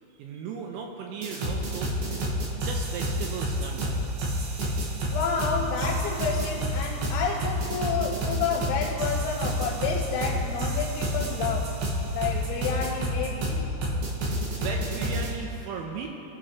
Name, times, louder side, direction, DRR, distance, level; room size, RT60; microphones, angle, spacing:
voice 1, 0.2-2.3 2.6-4.0 14.3-16.1, right 5 dB, 80° right, 1 dB, 2.9 m, -37 dB
sound 1, 1.2-15.3, equal, 60° right, 2.7 m, -29 dB
voice 2, 5.1-11.7 12.1-13.7, left 5 dB, 85° left, -3 dB, 3.7 m, -30 dB
21.0 x 8.9 x 3.1 m, 2.8 s
omnidirectional pair, 6.0 m